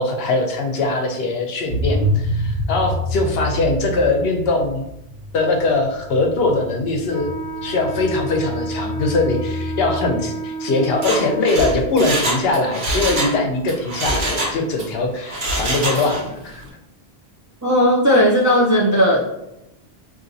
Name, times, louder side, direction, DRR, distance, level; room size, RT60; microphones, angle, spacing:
voice 1, 0.0-4.8 5.3-7.3 7.6-16.6, left 2 dB, 70° left, 3 dB, 0.8 m, -21 dB
sound 1, 1.7-10.2, equal, 45° left, 0.8 m, -27 dB
Wind instrument woodwind instrument, 7.1-12.0, right 4 dB, 80° right, 1.1 m, -30 dB
Mechanisms, 10.9-13.4 13.7-14.9 15.3-16.3 16.6-16.7, right 1 dB, 50° right, 0.9 m, -24 dB
voice 2, 17.6-19.3, equal, 30° right, -4 dB, 0.3 m, -15 dB
4.1 x 2.5 x 2.6 m, 0.84 s
omnidirectional pair, 1.1 m